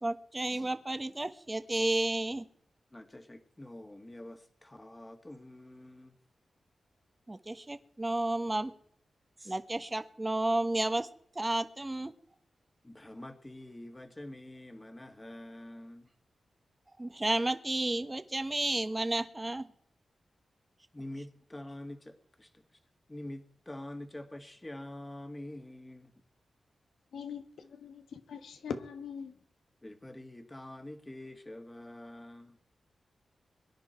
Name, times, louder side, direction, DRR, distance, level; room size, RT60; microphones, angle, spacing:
voice 1, 0.0-2.4 7.3-8.7 9.4-11.1 11.3-12.1 17.0-19.7, right 2 dB, 25° right, 1.3 m, -32 dB
voice 2, 2.9-6.2 12.8-16.1 20.9-22.6 23.1-26.1 29.8-32.6, left 1 dB, 20° left, 2.1 m, -46 dB
voice 3, 27.1-29.3, left 6 dB, 85° left, 1.3 m, -41 dB
23.0 x 10.5 x 4.5 m
cardioid pair, 50°, 0 cm